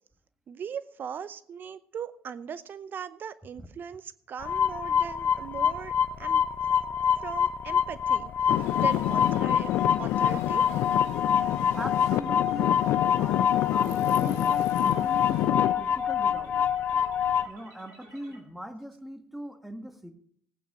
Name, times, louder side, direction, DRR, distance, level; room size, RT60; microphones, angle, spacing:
voice 1, 0.5-5.9 6.2-6.4 7.2-9.7 10.0-10.7, right 7 dB, 45° right, 15 dB, 0.7 m, -39 dB
sound 1, 4.4-17.5, left 8 dB, 45° left, 0.8 m, -26 dB
Traffic noise roadway noise / Engine, 8.5-15.7, left 15 dB, 70° left, 0.5 m, -28 dB
sound 2, 8.6-18.4, right 2 dB, 75° right, 5.1 m, -54 dB
voice 2, 11.8-12.8 13.1-16.7 17.5-20.1, equal, 5° right, 7 dB, 1.8 m, -40 dB
15.5 x 9.1 x 4.9 m, 0.63 s
hypercardioid pair, 65°, 5 cm